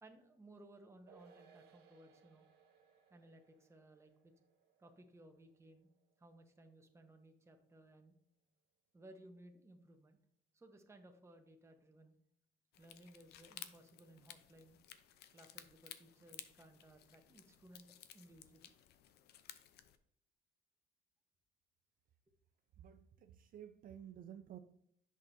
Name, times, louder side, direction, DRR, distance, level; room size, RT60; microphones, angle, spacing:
voice 1, 0.0-2.5 3.1-4.3 4.8-5.9 6.2-8.1 8.9-10.2 10.5-12.1 12.8-14.8 15.3-17.9 18.1-18.7, right 1 dB, 15° right, 4 dB, 1.1 m, -60 dB
sound 1, 1.1-7.7 8.0-8.1, right 6 dB, 70° right, 1.2 m, -68 dB
sound 2, 12.7-20.0, left 11 dB, 75° left, 0.6 m, -56 dB
voice 2, 22.8-24.6, right 10 dB, 55° right, 7 dB, 0.5 m, -53 dB
8.1 x 6.1 x 2.7 m, 0.70 s
cardioid pair, 110°, 17 cm